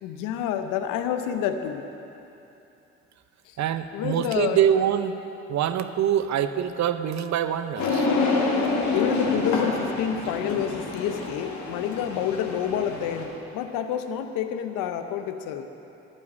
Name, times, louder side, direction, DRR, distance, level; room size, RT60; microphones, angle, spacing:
voice 1, 0.0-1.9 3.5-3.6 3.9-4.6 8.9-15.7, left 9 dB, 80° left, 8 dB, 0.7 m, -28 dB
voice 2, 3.6-5.2 5.5-8.1, right 9 dB, 60° right, 11 dB, 0.7 m, -24 dB
sound 1, 7.8-13.2, left 3 dB, 65° left, 1.7 m, -27 dB
12.0 x 5.4 x 8.5 m, 2.9 s
hypercardioid pair, 50°, 32 cm